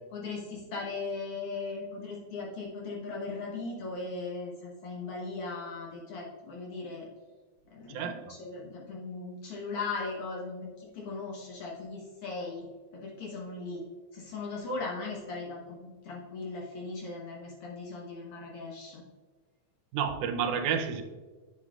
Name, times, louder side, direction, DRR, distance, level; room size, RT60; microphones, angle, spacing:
voice 1, 0.1-7.1 7.7-12.7 12.9-13.8 14.1-19.0, left 3 dB, 60° left, -2 dB, 1.6 m, -38 dB
voice 2, 7.9-8.3 19.9-21.0, right 7 dB, 90° right, 7 dB, 2.2 m, -30 dB
9.8 x 7.6 x 2.4 m, 1.3 s
omnidirectional pair, 3.4 m